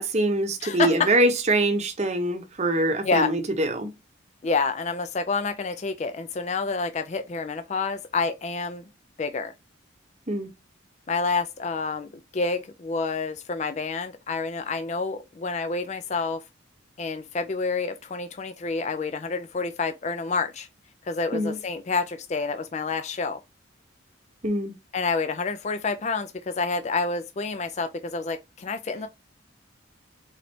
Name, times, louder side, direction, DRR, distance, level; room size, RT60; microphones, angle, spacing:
voice 1, 0.0-3.9 10.3-10.5 21.3-21.6 24.4-24.7, right 1 dB, 35° right, 0.8 m, -24 dB
voice 2, 0.6-1.1 3.0-3.3 4.4-8.8 9.2-9.5 11.1-16.4 17.0-20.7 21.0-23.4 24.9-29.1, left 4 dB, 35° left, 0.4 m, -28 dB
4.0 x 3.1 x 4.3 m
head